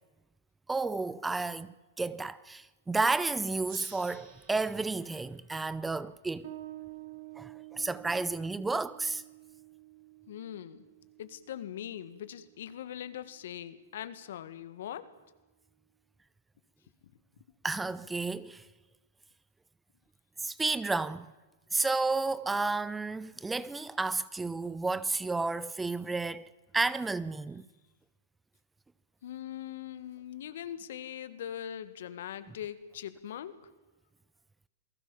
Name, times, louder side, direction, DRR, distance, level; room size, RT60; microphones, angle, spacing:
voice 1, 0.7-6.5 7.4-9.2 17.6-18.6 20.4-21.3 21.7-26.5 26.7-27.6, right 3 dB, 10° right, 0.7 m, -32 dB
Gong, 3.6-6.8, right 7 dB, 45° right, 5.1 m, -54 dB
Bass guitar, 6.4-13.6, right 17 dB, 60° right, 4.7 m, -50 dB
voice 2, 10.3-10.8 11.2-15.1 29.2-33.6, left 10 dB, 70° left, 1.9 m, -41 dB
28.0 x 19.0 x 7.3 m
hypercardioid pair, 125°, 0 cm